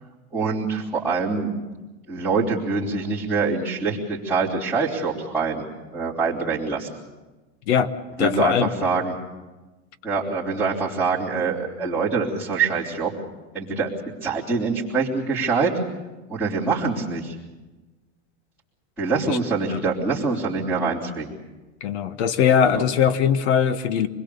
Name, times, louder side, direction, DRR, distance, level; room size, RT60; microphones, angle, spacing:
voice 1, 0.3-1.5 2.1-5.6 5.9-6.9 8.2-9.1 10.0-13.1 13.5-13.9 14.2-15.7 16.3-17.3 19.0-21.3 22.6-22.8, right 4 dB, ahead, -15 dB, 3.5 m, -24 dB
voice 2, 8.2-8.7 19.3-19.4 19.7-19.8 21.8-24.1, left 8 dB, 70° left, 12 dB, 1.5 m, -20 dB
26.5 x 21.0 x 6.9 m, 1.2 s
supercardioid pair, 160°, 35 cm